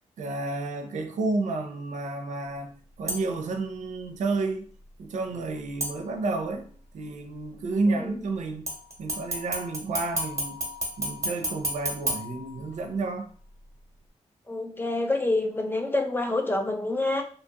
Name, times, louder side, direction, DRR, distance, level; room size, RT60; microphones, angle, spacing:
voice 1, 0.2-2.7 3.0-4.6 5.0-6.7 6.9-8.7 9.0-10.6 11.0-13.3, right 3 dB, 85° right, 5 dB, 0.5 m, -30 dB
sound 1, 3.1-3.5 5.8-6.5 8.7-13.0 13.5-13.6, right 1 dB, 25° right, 0.9 m, -33 dB
voice 2, 14.5-17.2, left 2 dB, 15° left, 4 dB, 0.4 m, -27 dB
2.8 x 2.3 x 2.8 m, 0.44 s
cardioid pair, 100°, 12 cm